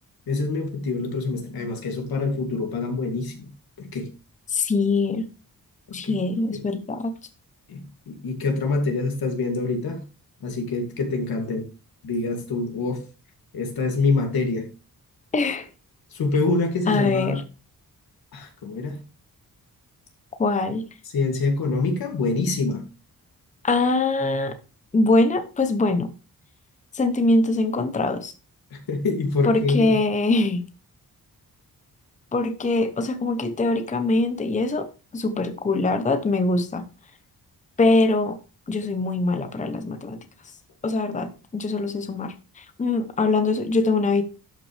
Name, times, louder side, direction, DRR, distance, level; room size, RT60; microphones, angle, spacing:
voice 1, 0.3-3.5 3.8-4.1 6.0-6.2 7.7-7.8 8.1-10.0 10.4-11.6 12.0-13.0 13.5-14.7 16.1-17.4 18.3-19.0 21.1-22.8 28.7-29.9, left 3 dB, 85° left, 2.5 m, -25 dB
voice 2, 4.5-5.3 5.9-7.1 15.3-15.7 16.9-17.4 20.4-20.8 23.6-24.6 24.9-26.1 26.9-28.3 29.4-30.6 32.3-34.9 35.1-36.9 37.8-38.4 38.7-40.2 40.8-44.2, left 2 dB, 20° left, 0.8 m, -23 dB
12.0 x 5.8 x 3.3 m
wide cardioid pair, 160°, 35 cm